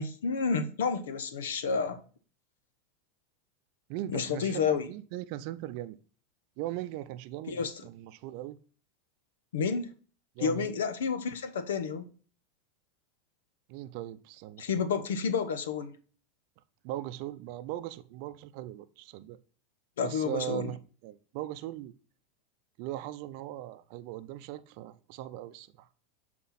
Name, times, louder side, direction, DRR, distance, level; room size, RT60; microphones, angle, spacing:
voice 1, 0.0-2.0 4.1-4.9 7.5-7.7 9.5-9.9 10.4-12.0 14.6-16.0 20.0-20.7, left 6 dB, 90° left, 0.8 m, -30 dB
voice 2, 3.9-6.0 6.6-8.6 10.4-10.7 13.7-14.9 16.8-19.4 20.0-20.8 21.0-21.9 22.8-25.9, right 14 dB, 60° right, 0.5 m, -39 dB
7.4 x 4.2 x 4.2 m
supercardioid pair, 115°, 0 cm